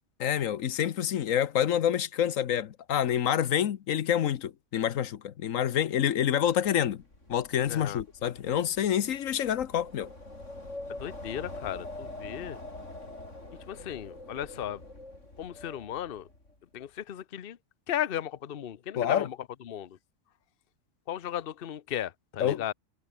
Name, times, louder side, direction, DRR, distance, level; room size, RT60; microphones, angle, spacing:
voice 1, 0.2-7.0 7.3-10.1 19.0-19.3 22.4-22.6, left 10 dB, 80° left, 1.3 m, -27 dB
Wind, 6.7-16.6, left 2 dB, 65° left, 6.4 m, -45 dB
voice 2, 7.7-8.0 10.9-12.6 13.7-14.8 15.4-16.3 16.7-17.6 17.9-19.4 19.7-20.0 21.1-22.7, left 11 dB, 50° left, 0.9 m, -35 dB
omnidirectional pair, 1.4 m